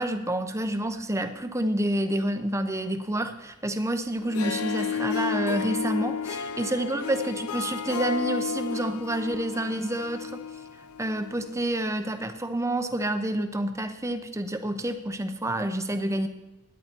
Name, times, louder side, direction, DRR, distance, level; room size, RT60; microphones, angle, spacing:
voice 1, 0.0-10.4 11.0-16.3, right 1 dB, 15° right, 8 dB, 0.8 m, -28 dB
Harp, 4.2-11.6, left 6 dB, 85° left, 0.7 m, -32 dB
17.0 x 10.5 x 4.5 m, 0.95 s
head